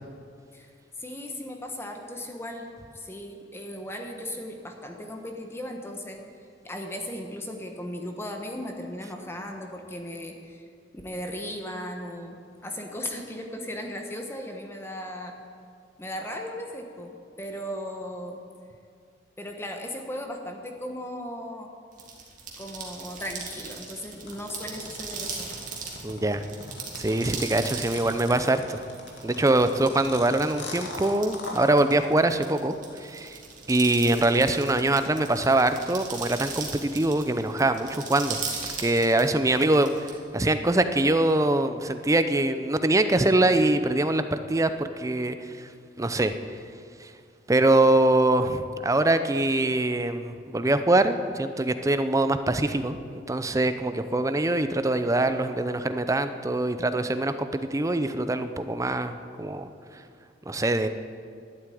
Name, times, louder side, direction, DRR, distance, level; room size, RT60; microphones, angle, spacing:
voice 1, 1.0-2.7 2.9-6.2 6.6-10.7 11.0-15.3 16.0-18.4 19.4-21.7 22.6-25.5, left 1 dB, 15° left, 3 dB, 1.2 m, -37 dB
sound 1, 21.9-40.1, right 5 dB, 45° right, 2.3 m, -38 dB
sound 2, 24.3-31.7, left 3 dB, 80° left, 2.2 m, -39 dB
voice 2, 26.0-26.4 27.0-28.8 29.2-32.7 33.0-33.4 33.7-38.4 38.8-40.1 40.3-45.7 46.0-46.3 47.0-47.1 47.5-59.7 60.5-60.9, right 2 dB, 20° right, 10 dB, 0.6 m, -23 dB
12.0 x 8.0 x 9.3 m, 2.3 s
head